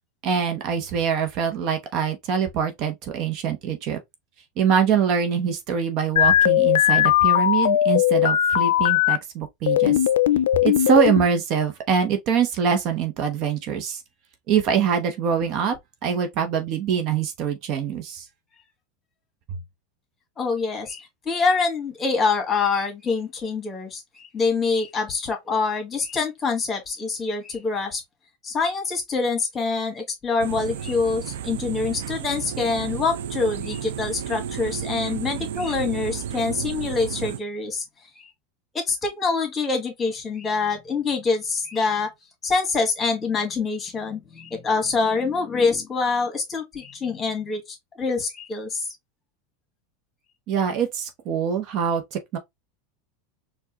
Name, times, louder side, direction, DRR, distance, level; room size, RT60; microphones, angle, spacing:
voice 1, 0.2-4.0 4.6-10.0 10.6-14.0 14.5-18.3 19.5-19.6 50.5-52.4, right 7 dB, 50° right, 0.9 m, -24 dB
sound 1, 6.2-9.2 9.7-11.3, left 12 dB, 85° left, 0.3 m, -19 dB
voice 2, 20.4-28.0 28.4-37.8 38.7-42.1 42.4-48.9, left 4 dB, 25° left, 1.8 m, -25 dB
sound 2, 30.4-37.4, right 9 dB, 80° right, 0.4 m, -32 dB
4.5 x 2.5 x 2.9 m
hypercardioid pair, 110°, 0 cm